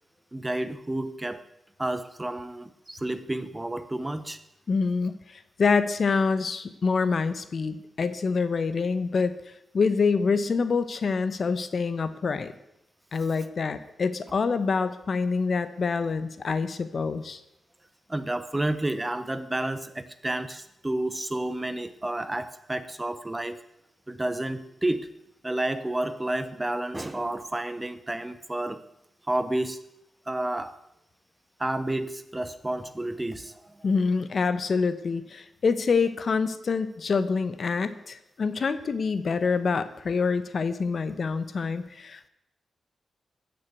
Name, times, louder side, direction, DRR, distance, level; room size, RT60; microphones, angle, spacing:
voice 1, 0.3-1.4 1.8-4.4 18.1-23.6 24.1-25.1 25.4-28.8 29.3-29.8 30.3-30.7 31.6-33.7, right 1 dB, 15° right, 12 dB, 1.0 m, -30 dB
voice 2, 4.7-9.3 9.7-12.5 13.1-17.4 33.8-42.3, left 5 dB, 50° left, 13 dB, 1.0 m, -26 dB
15.5 x 6.6 x 8.1 m, 0.83 s
wide cardioid pair, 110°, 0 cm